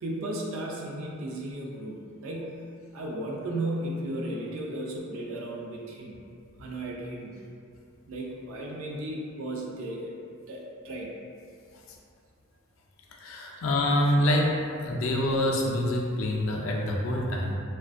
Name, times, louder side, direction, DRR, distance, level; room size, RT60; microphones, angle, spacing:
voice 1, 0.0-2.6 2.9-6.2 6.6-7.3 8.1-10.2 10.5-11.1 13.5-13.7, right 1 dB, 75° right, -2 dB, 0.4 m, -35 dB
voice 2, 13.2-14.6 14.8-17.5, left 1 dB, 70° left, -1 dB, 0.4 m, -26 dB
2.4 x 2.1 x 2.4 m, 2.4 s
head